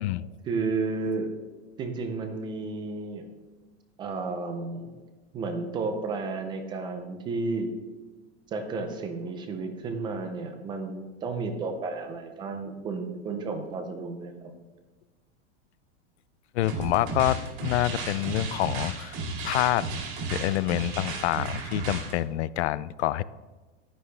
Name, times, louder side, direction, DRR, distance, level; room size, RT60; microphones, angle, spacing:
voice 1, 0.4-1.3 1.8-3.3 4.0-4.9 5.3-7.7 8.5-14.5, right 3 dB, 15° right, 6 dB, 0.4 m, -32 dB
voice 2, 16.5-19.9 20.3-23.2, left 14 dB, 75° left, 18 dB, 0.5 m, -27 dB
sound 1, 16.6-22.1, right 3 dB, 50° right, 2.5 m, -34 dB
10.0 x 9.5 x 3.3 m, 1.3 s
supercardioid pair, 170°, 34 cm